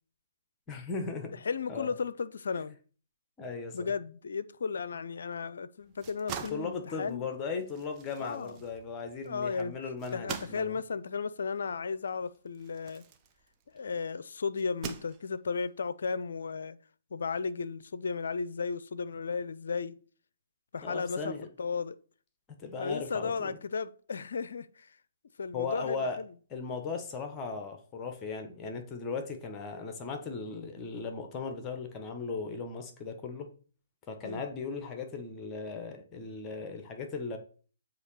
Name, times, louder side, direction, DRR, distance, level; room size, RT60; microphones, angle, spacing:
voice 1, 0.7-1.4 1.7-1.9 3.4-3.9 6.5-10.8 20.8-21.5 22.6-23.6 25.5-26.2 26.5-33.5 34.1-37.4, left 4 dB, 25° left, 1.2 m, -37 dB
voice 2, 1.4-2.8 3.7-7.3 8.2-8.6 9.2-9.8 10.1-13.0 13.7-16.8 17.1-20.0 20.7-22.0 22.8-24.9 25.4-26.3 34.2-34.4, left 5 dB, 65° left, 0.5 m, -34 dB
sound 1, 5.8-13.9 14.5-15.6, right 7 dB, 25° right, 0.8 m, -45 dB
7.8 x 2.9 x 5.6 m
figure-of-eight pair, 125°, 0 cm